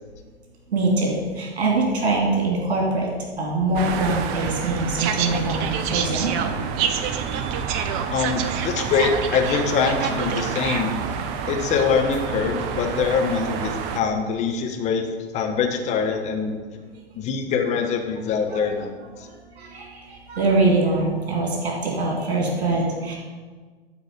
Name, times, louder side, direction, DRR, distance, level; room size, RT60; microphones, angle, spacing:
voice 1, 0.7-3.1 3.4-6.3 18.5-18.6 19.6-23.1, right 2 dB, 55° right, -2 dB, 2.5 m, -23 dB
sound 1, 3.7-14.0, right 7 dB, 25° right, 0.5 m, -27 dB
voice 2, 8.1-11.0 11.5-15.1 15.3-16.6 17.2-18.9 19.2-19.3, left 6 dB, 20° left, 4 dB, 0.9 m, -23 dB
11.5 x 4.5 x 5.2 m, 1.5 s
figure-of-eight pair, 100°, 33 cm